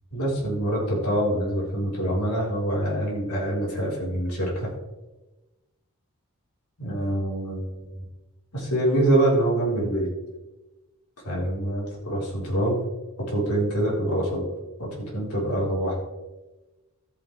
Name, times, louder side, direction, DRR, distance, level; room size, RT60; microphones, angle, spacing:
voice 1, 0.1-4.7 6.8-8.0 8.5-10.1 11.2-12.8 13.3-14.4 14.8-16.0, right 1 dB, 90° left, -5 dB, 4.3 m, -25 dB
13.5 x 9.0 x 3.4 m, 1.1 s
head